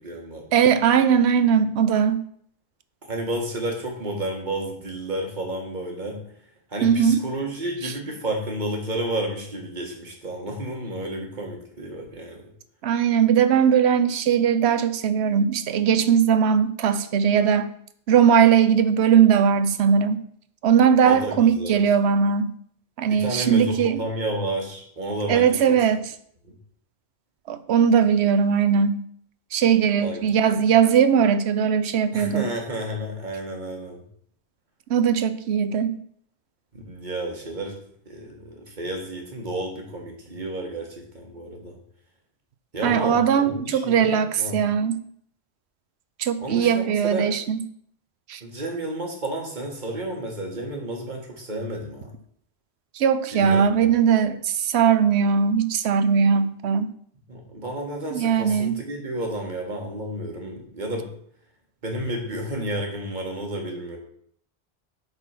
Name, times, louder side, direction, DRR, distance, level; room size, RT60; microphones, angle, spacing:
voice 1, 0.0-0.5 3.1-6.3 6.7-12.5 21.0-21.9 23.1-25.8 26.4-26.6 30.0-30.3 32.1-34.0 36.7-37.8 38.1-41.8 42.7-44.7 46.4-47.3 48.4-52.1 53.3-54.0 57.3-61.1 61.8-64.0, right 1 dB, 45° right, 1 dB, 1.7 m, -31 dB
voice 2, 0.5-2.2 6.8-7.2 12.8-17.7 18.1-20.2 20.6-22.5 23.0-24.0 25.3-26.0 27.5-29.0 29.5-32.5 34.9-36.0 42.8-45.0 46.2-47.6 48.3-48.4 53.0-56.9 58.1-58.7, right 7 dB, 85° right, 12 dB, 0.9 m, -19 dB
7.9 x 4.1 x 5.7 m, 0.64 s
omnidirectional pair, 1.1 m